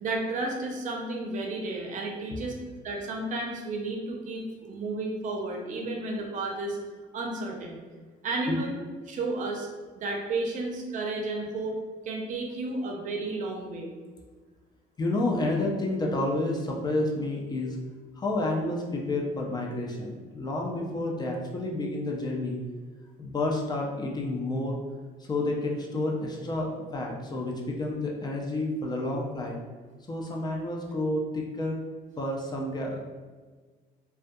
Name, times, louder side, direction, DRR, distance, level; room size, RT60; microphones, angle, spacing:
voice 1, 0.0-2.5 2.8-6.8 7.1-7.8 8.2-8.7 9.1-9.7 10.0-11.8 12.0-13.9, right 2 dB, 50° right, 0 dB, 0.5 m, -32 dB
voice 2, 15.0-17.8 18.2-22.6 23.2-24.8 25.3-29.6 30.1-31.8 32.2-33.0, left 2 dB, 25° left, 0 dB, 0.3 m, -30 dB
2.2 x 2.2 x 2.6 m, 1.4 s
cardioid pair, 110°, 17 cm